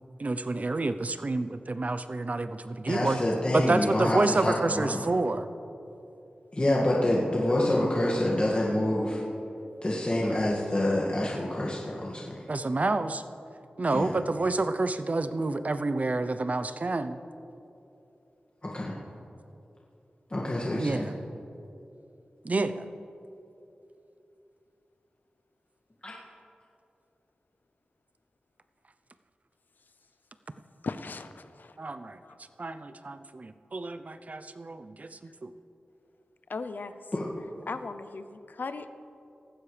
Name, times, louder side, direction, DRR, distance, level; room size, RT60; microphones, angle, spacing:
voice 1, 0.2-3.2 3.5-5.5 12.5-13.2 13.8-17.2 20.8-21.1 22.4-22.9 31.8-32.2 32.6-35.5, right 2 dB, 50° right, 11 dB, 0.7 m, -29 dB
voice 2, 2.9-5.0 6.5-9.2 9.8-12.2 13.9-14.1 18.7-18.9 20.3-21.1 26.0-26.1 37.1-37.2, left 1 dB, 35° left, -5 dB, 2.1 m, -27 dB
voice 3, 30.8-31.7 32.2-32.4 36.5-36.9 37.7-38.9, left 4 dB, 70° left, 11 dB, 0.7 m, -37 dB
19.0 x 15.0 x 3.4 m, 2.8 s
wide cardioid pair, 60°, 3 cm